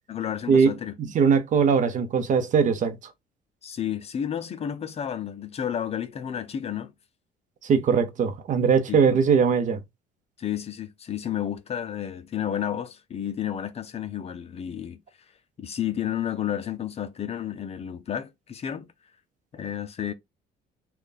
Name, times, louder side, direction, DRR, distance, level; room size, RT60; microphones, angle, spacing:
voice 1, 0.1-0.9 3.6-6.9 8.9-9.0 10.4-15.0 15.6-18.9 19.5-20.1, left 10 dB, 40° left, 0.6 m, -31 dB
voice 2, 1.0-3.0 7.6-9.8, right 6 dB, 50° right, 0.8 m, -21 dB
3.4 x 2.4 x 4.0 m
cardioid pair, 110°, 17 cm